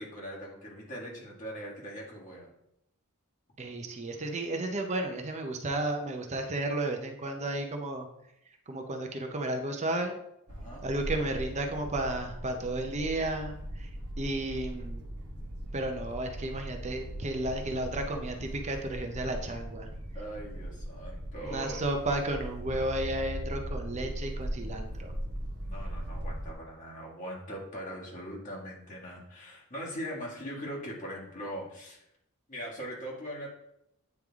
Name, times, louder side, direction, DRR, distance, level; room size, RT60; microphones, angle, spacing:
voice 1, 0.0-2.5 10.5-10.9 20.1-21.8 25.6-32.0 32.5-33.5, equal, 35° left, -4 dB, 1.9 m, -41 dB
voice 2, 3.6-8.1 8.7-10.2 10.8-13.9 14.2-15.0 15.7-19.9 21.4-25.1, right 2 dB, 30° right, 4 dB, 0.6 m, -33 dB
sound 1, 10.5-26.5, equal, 80° right, 1.0 m, -39 dB
9.1 x 3.3 x 3.5 m, 0.80 s
head